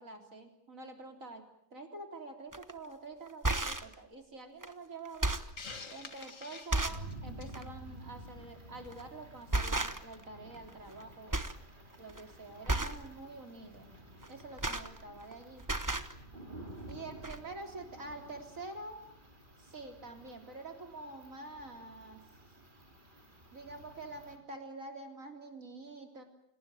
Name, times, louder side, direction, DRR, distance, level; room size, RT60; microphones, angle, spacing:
voice 1, 0.0-5.3 5.9-11.4 12.0-14.0 14.3-15.7 16.9-19.1 19.6-22.2 23.5-26.2, right 2 dB, 65° right, 5 dB, 4.1 m, -47 dB
sound 1, 2.5-2.7 3.3-3.9 4.6-4.7 5.1-5.6 6.2-6.3 6.7-7.1 7.5-7.7 8.8-9.1 9.5-10.2 10.5-11.0 11.3-11.6 11.9-12.2 12.7-13.1 14.2-15.3 15.6-16.1 16.9-17.0 17.2-17.4, right 2 dB, 15° right, 1.0 m, -33 dB
Hiss, 5.6-7.6, left 4 dB, 65° left, 2.4 m, -47 dB
sound 2, 6.8-24.4, right 1 dB, 35° right, 4.2 m, -52 dB
28.5 x 19.5 x 9.2 m, 0.74 s
omnidirectional pair, 1.5 m